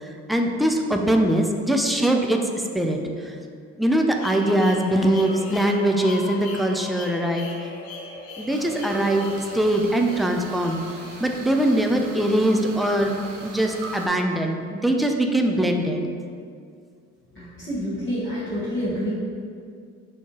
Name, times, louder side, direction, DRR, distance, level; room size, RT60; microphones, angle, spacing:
voice 1, 0.3-2.4 2.7-3.4 3.8-7.5 8.4-9.3 9.5-10.8 11.2-13.1 13.4-16.0, right 1 dB, ahead, 2 dB, 0.3 m, -22 dB
sound 1, 4.2-12.1, left 3 dB, 75° left, 0.6 m, -39 dB
sound 2, 8.5-14.1, right 2 dB, 75° right, 0.8 m, -40 dB
voice 2, 17.3-19.1, equal, 30° left, -11 dB, 1.5 m, -28 dB
6.3 x 2.8 x 2.9 m, 2.2 s
hypercardioid pair, 50°, 38 cm